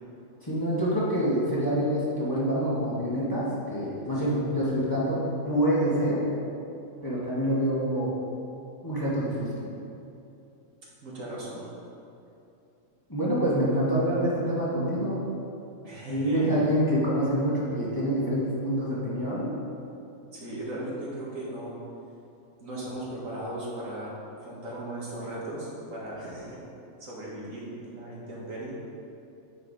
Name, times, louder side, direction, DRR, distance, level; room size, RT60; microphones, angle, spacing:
voice 1, 0.4-6.2 7.0-8.1 8.8-9.6 13.1-15.2 16.1-19.5, equal, 15° left, -8 dB, 1.7 m, -26 dB
voice 2, 11.0-11.7 15.8-16.5 20.3-21.7 22.6-24.1 24.4-26.6 27.0-28.7, right 1 dB, 75° right, -6 dB, 2.1 m, -37 dB
9.0 x 5.7 x 4.2 m, 2.8 s
omnidirectional pair, 1.4 m